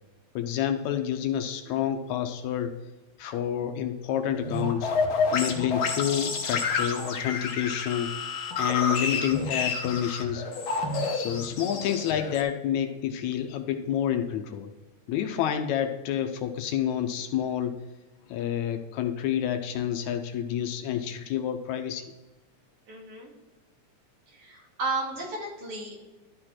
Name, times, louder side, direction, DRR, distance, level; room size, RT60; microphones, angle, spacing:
voice 1, 0.4-2.7 3.2-4.9 5.3-8.1 8.6-10.4 11.1-14.7 15.1-17.8 18.3-22.1, left 10 dB, 80° left, 6 dB, 1.9 m, -29 dB
sound 1, 4.3-12.4, left 4 dB, 60° left, 1.4 m, -29 dB
voice 2, 22.9-23.3 24.3-26.0, right 3 dB, 75° right, -3 dB, 3.9 m, -34 dB
12.5 x 4.4 x 4.3 m, 1.1 s
omnidirectional pair, 3.5 m